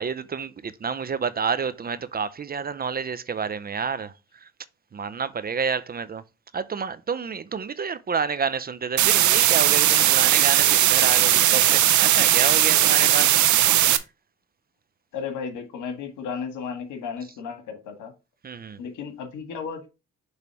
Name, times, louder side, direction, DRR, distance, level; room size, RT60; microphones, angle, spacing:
voice 1, 0.0-4.5 4.9-6.2 6.5-13.4 18.4-18.8, right 6 dB, 30° right, 0.5 m, -29 dB
sound 1, 9.0-14.0, right 13 dB, 70° right, 0.7 m, -18 dB
voice 2, 15.1-18.1 18.8-19.9, left 6 dB, 85° left, 1.7 m, -34 dB
6.9 x 3.3 x 4.6 m
cardioid pair, 90°, 30 cm